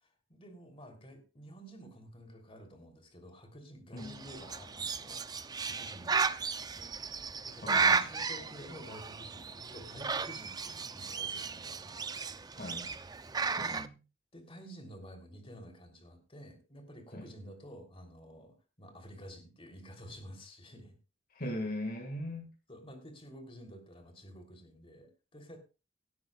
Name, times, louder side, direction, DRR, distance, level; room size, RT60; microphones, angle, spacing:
voice 1, 0.0-7.0 7.4-12.0 13.3-13.8 14.3-21.0 22.7-25.6, equal, 30° left, 4 dB, 3.2 m, -51 dB
Bird, 4.0-13.9, right 5 dB, 20° right, 0.5 m, -34 dB
voice 2, 7.6-8.0 12.5-12.9 13.6-13.9 17.1-17.3 21.3-22.5, left 1 dB, 50° left, 4 dB, 1.8 m, -39 dB
17.5 x 13.0 x 2.4 m, 0.30 s
head